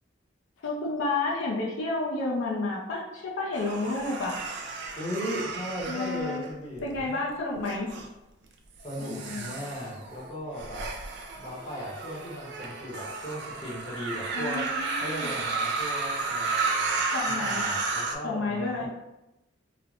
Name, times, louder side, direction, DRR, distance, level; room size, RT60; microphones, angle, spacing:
voice 1, 0.6-4.3 5.9-6.4 6.8-7.9 9.0-9.5 14.3-15.3 17.1-17.6 18.2-18.9, left 3 dB, 75° left, -3 dB, 0.5 m, -31 dB
sound 1, 3.5-7.0 7.6-8.1 8.8-18.1, right 3 dB, 55° right, 0.4 m, -33 dB
voice 2, 5.0-7.2 8.8-10.9 11.3-14.7 15.0-18.9, equal, 30° left, -6 dB, 0.8 m, -37 dB
3.1 x 2.0 x 2.4 m, 0.95 s
head